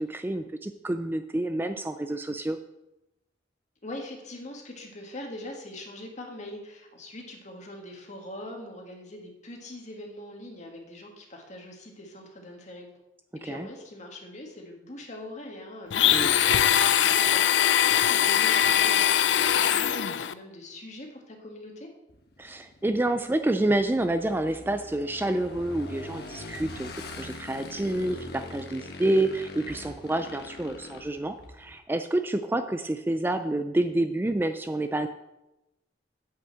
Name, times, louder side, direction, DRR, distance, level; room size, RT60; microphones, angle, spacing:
voice 1, 0.0-2.6 13.5-13.7 16.0-16.3 22.4-26.9 27.2-35.1, right 1 dB, 10° right, 9 dB, 0.4 m, -28 dB
voice 2, 3.8-12.9 13.3-21.9, left 1 dB, 40° left, 1 dB, 1.9 m, -42 dB
Domestic sounds home sounds, 15.9-20.3, left 10 dB, 80° left, 0.4 m, -22 dB
Motorcycle / Engine, 22.1-31.8, left 2 dB, 60° left, 1.4 m, -43 dB
8.8 x 5.6 x 7.5 m, 0.94 s
head